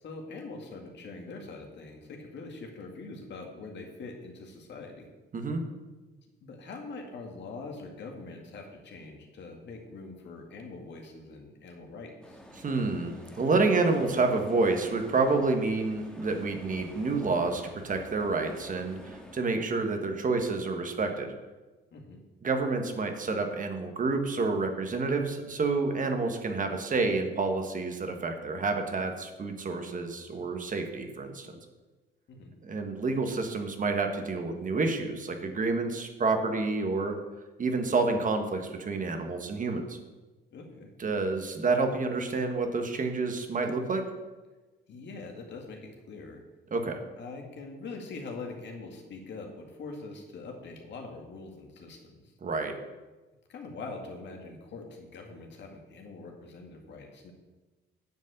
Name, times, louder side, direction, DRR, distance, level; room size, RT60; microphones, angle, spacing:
voice 1, 0.0-5.1 6.2-12.4 21.9-22.2 32.3-32.5 40.5-40.9 44.9-46.4 47.2-52.3 53.5-57.3, left 3 dB, 65° left, 2 dB, 2.1 m, -43 dB
sound 1, 12.2-19.4, equal, 5° left, 1.7 m, -49 dB
voice 2, 12.6-21.3 22.4-31.6 32.6-37.1 37.6-40.0 41.0-44.0 46.7-47.0 52.4-52.7, right 3 dB, 40° right, 5 dB, 1.5 m, -29 dB
9.3 x 5.3 x 7.9 m, 1.2 s
cardioid pair, 90°, 20 cm